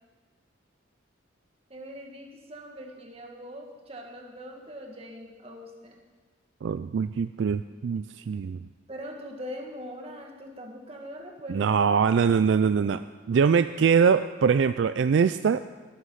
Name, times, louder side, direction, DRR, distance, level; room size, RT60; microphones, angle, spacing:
voice 1, 1.7-6.0 8.9-11.9, equal, 30° right, 1 dB, 1.7 m, -42 dB
voice 2, 6.6-8.6 11.5-13.0 13.3-15.9, right 6 dB, 65° right, 12 dB, 0.3 m, -23 dB
13.0 x 11.5 x 5.7 m, 1.4 s
head